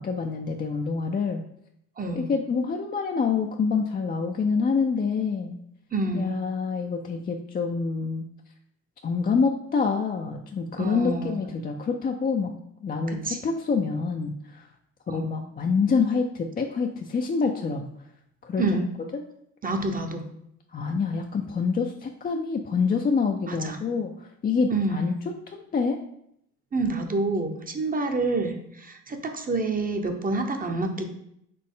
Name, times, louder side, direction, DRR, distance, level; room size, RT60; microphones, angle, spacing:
voice 1, 0.0-1.4 2.2-5.6 6.1-8.3 9.0-14.6 15.1-17.9 18.4-18.6 20.7-25.1 25.5-26.0, left 5 dB, 25° left, 3 dB, 0.4 m, -26 dB
voice 2, 2.0-2.3 5.9-6.4 10.8-11.4 13.1-13.4 15.1-15.3 18.6-18.9 19.6-20.2 23.5-23.8 24.7-25.1 26.7-31.0, right 2 dB, 25° right, 5 dB, 0.7 m, -28 dB
4.2 x 3.1 x 3.7 m, 0.74 s
supercardioid pair, 70°, 35 cm